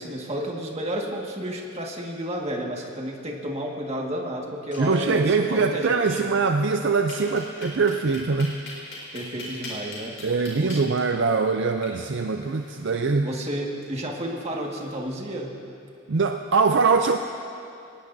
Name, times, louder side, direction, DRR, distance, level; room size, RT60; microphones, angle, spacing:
voice 1, 0.0-6.2 9.1-10.1 10.5-10.8 13.2-15.5, right 1 dB, 30° right, -1 dB, 1.8 m, -31 dB
sound 1, 4.5-5.5 5.7-5.8 6.1-6.2 7.1-15.0, left 3 dB, 55° left, 4.8 m, -44 dB
voice 2, 4.8-8.6 10.2-13.3 16.1-17.2, right 4 dB, 60° right, 5 dB, 0.5 m, -22 dB
22.5 x 19.0 x 2.7 m, 2.6 s
head